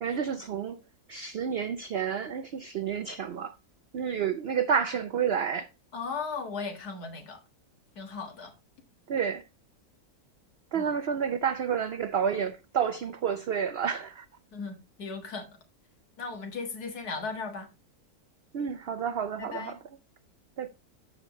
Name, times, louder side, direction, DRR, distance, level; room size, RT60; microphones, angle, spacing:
voice 1, 0.0-0.8 1.1-3.6 3.9-5.7 9.1-9.5 10.7-14.3 18.5-19.8 20.6-20.7, right 7 dB, 60° right, 0.6 m, -30 dB
voice 2, 5.9-7.4 8.0-8.5 10.7-10.9 14.5-15.6 16.2-17.7 19.4-19.7, left 4 dB, 85° left, 2.2 m, -37 dB
13.5 x 5.1 x 3.0 m
omnidirectional pair, 1.6 m